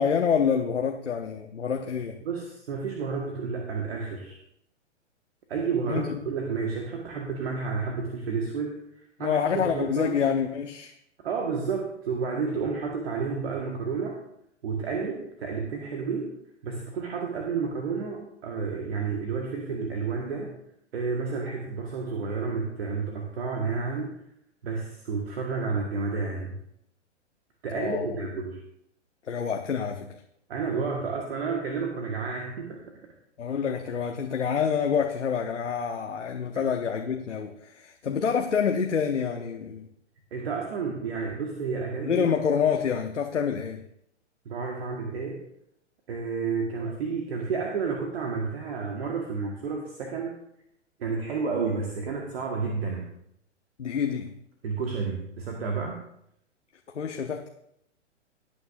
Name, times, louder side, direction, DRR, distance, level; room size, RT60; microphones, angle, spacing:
voice 1, 0.0-2.2 5.9-6.2 9.2-10.9 27.7-28.2 29.2-30.1 33.4-39.9 42.0-43.8 53.8-54.3 56.9-57.5, left 7 dB, 75° left, 4 dB, 0.9 m, -27 dB
voice 2, 2.2-4.4 5.5-10.1 11.2-14.2 14.6-16.4 16.6-20.5 20.9-24.2 24.6-26.6 27.6-28.6 30.5-33.0 36.5-36.7 40.3-42.3 44.4-45.4 46.1-50.4 51.0-53.1 54.6-56.0, right 5 dB, 55° right, 1 dB, 1.7 m, -31 dB
18.0 x 8.8 x 2.6 m, 0.75 s
figure-of-eight pair, 115°, 36 cm